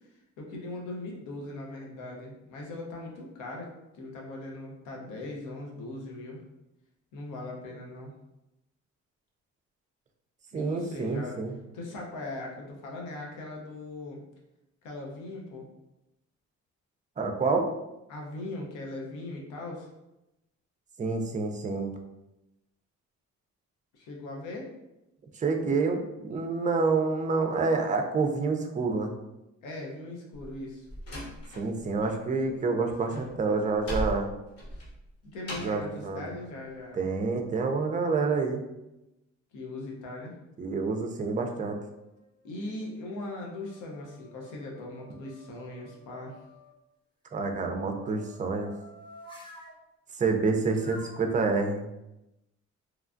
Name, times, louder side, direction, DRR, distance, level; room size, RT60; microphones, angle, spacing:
voice 1, 0.4-6.4 7.1-8.1 10.5-11.4 11.7-14.2 14.8-15.7 18.1-19.9 23.9-24.7 29.6-30.9 35.2-37.1 39.5-40.4 42.4-46.4, left 2 dB, 85° left, -1 dB, 0.8 m, -39 dB
voice 2, 10.5-11.6 17.2-17.7 21.0-21.9 25.4-29.1 31.6-34.3 35.6-36.2 36.9-38.6 40.6-41.8 47.3-48.7 50.2-51.8, right 4 dB, 25° right, 4 dB, 0.4 m, -28 dB
Slam, 30.3-32.1 32.4-35.9, right 1 dB, 50° left, 1.0 m, -38 dB
sound 1, 41.6-42.2 42.8-46.7 47.6-49.8 50.7-51.3, equal, 15° left, 0.8 m, -52 dB
3.1 x 2.3 x 2.5 m, 0.93 s
cardioid pair, 90°, 30 cm